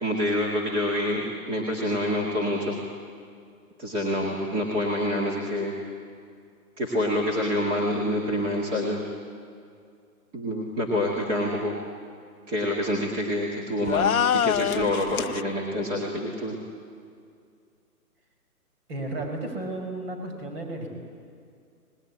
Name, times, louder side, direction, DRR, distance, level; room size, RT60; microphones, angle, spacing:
voice 1, 0.0-2.8 3.8-5.7 6.8-9.0 10.3-11.7 12.5-16.6, left 1 dB, 10° right, -3 dB, 2.0 m, -27 dB
sound 1, 13.9-15.4, left 9 dB, 65° left, 0.7 m, -24 dB
voice 2, 18.9-20.9, right 2 dB, 40° right, 3 dB, 6.1 m, -33 dB
26.0 x 20.0 x 9.9 m, 2.3 s
hypercardioid pair, 160°, 46 cm